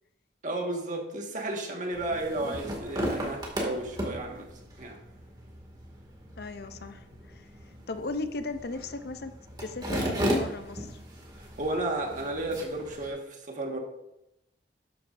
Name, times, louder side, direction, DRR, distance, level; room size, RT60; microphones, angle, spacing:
voice 1, 0.4-4.5 4.8-5.0 11.4-13.8, right 2 dB, 45° right, 1 dB, 1.6 m, -33 dB
sound 1, 1.9-13.1, equal, 25° right, 2.2 m, -35 dB
voice 2, 6.4-9.3 9.6-11.0, left 3 dB, 60° left, 9 dB, 0.6 m, -37 dB
13.0 x 9.0 x 2.6 m, 0.88 s
head